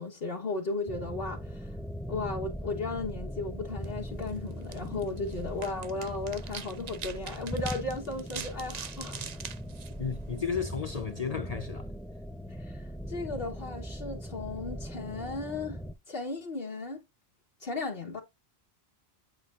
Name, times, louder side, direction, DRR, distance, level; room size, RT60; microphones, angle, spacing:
voice 1, 0.0-1.8 2.1-9.2 12.5-15.8 16.1-17.0 17.6-18.2, left 3 dB, 65° left, 1.5 m, -35 dB
sound 1, 0.9-15.9, equal, ahead, 0.3 m, -40 dB
sound 2, 3.7-10.7, right 7 dB, 50° right, 0.6 m, -44 dB
voice 2, 10.0-11.9, left 6 dB, 40° left, 0.8 m, -33 dB
8.1 x 5.4 x 2.5 m
omnidirectional pair, 1.1 m